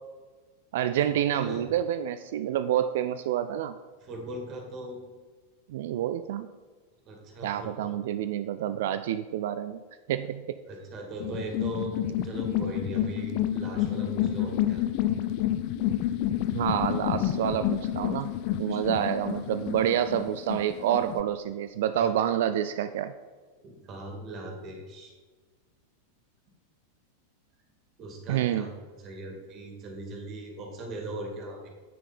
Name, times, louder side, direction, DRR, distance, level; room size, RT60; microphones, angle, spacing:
voice 1, 0.7-3.8 5.7-6.5 7.4-9.8 10.1-10.6 16.5-18.3 18.6-23.1 28.3-28.7, right 10 dB, 55° right, 11 dB, 0.3 m, -28 dB
voice 2, 1.3-1.6 4.0-5.0 7.1-7.9 10.7-14.8 21.9-22.1 23.6-25.1 28.0-31.7, right 2 dB, 35° right, 1 dB, 2.4 m, -39 dB
sound 1, 11.2-21.2, left 12 dB, 45° left, 0.5 m, -29 dB
8.7 x 6.5 x 5.3 m, 1.4 s
figure-of-eight pair, 90°, 0 cm